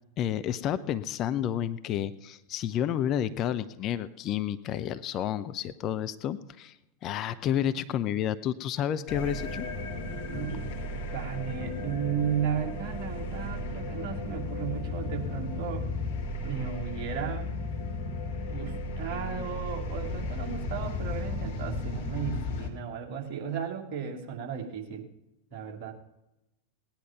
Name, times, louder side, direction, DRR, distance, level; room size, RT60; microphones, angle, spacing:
voice 1, 0.2-6.8 7.0-9.7, left 10 dB, 35° left, 11 dB, 0.6 m, -30 dB
sound 1, 9.1-22.7, left 2 dB, 50° left, 2.5 m, -34 dB
voice 2, 10.3-10.7 11.1-15.9 16.4-17.5 18.5-25.1 25.5-25.9, right 7 dB, 40° right, 2 dB, 2.6 m, -34 dB
18.5 x 10.5 x 5.9 m, 0.94 s
figure-of-eight pair, 90°, 0 cm